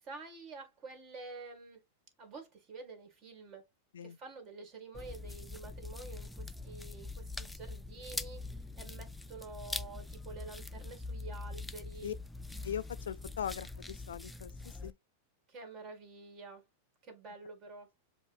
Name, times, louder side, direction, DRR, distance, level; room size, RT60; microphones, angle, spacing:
voice 1, 0.0-1.8 2.2-3.6 4.0-12.2 15.5-16.6 17.0-17.9, right 3 dB, 35° right, 2.1 m, -49 dB
sound 1, 4.9-14.9, left 3 dB, 5° left, 0.3 m, -43 dB
voice 2, 12.6-14.9, left 9 dB, 85° left, 0.3 m, -40 dB
7.2 x 2.6 x 2.6 m
hypercardioid pair, 115°, 0 cm